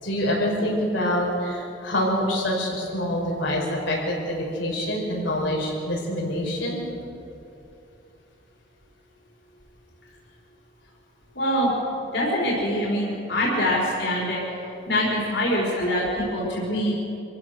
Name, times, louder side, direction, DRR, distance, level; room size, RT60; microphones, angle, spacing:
voice 1, 0.0-6.8, left 1 dB, 85° left, -3 dB, 5.4 m, -26 dB
voice 2, 11.3-11.7 12.1-14.4 14.9-16.9, equal, 65° left, -4 dB, 4.8 m, -24 dB
26.0 x 15.5 x 6.7 m, 2.7 s
head